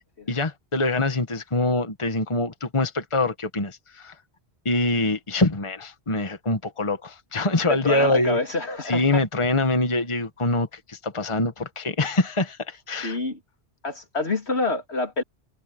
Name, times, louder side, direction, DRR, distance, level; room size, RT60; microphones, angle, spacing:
voice 1, 0.3-4.1 4.6-8.4 8.8-13.2, left 2 dB, 30° left, 1.5 m, -24 dB
voice 2, 7.7-9.2 13.0-13.4 13.8-15.2, left 2 dB, 80° left, 3.6 m, -27 dB
omnidirectional pair, 1.1 m